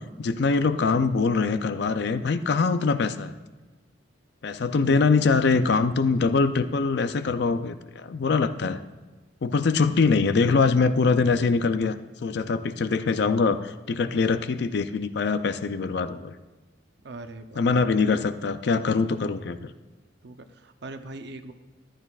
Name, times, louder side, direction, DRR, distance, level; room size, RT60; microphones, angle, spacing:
voice 1, 0.2-3.3 4.4-8.8 9.4-12.0 12.2-16.3 17.6-19.7, left 4 dB, 60° left, 11 dB, 0.4 m, -23 dB
voice 2, 4.7-5.1 17.0-17.6 20.2-21.5, right 2 dB, 60° right, 8 dB, 0.7 m, -41 dB
14.0 x 11.5 x 2.4 m, 1.3 s
head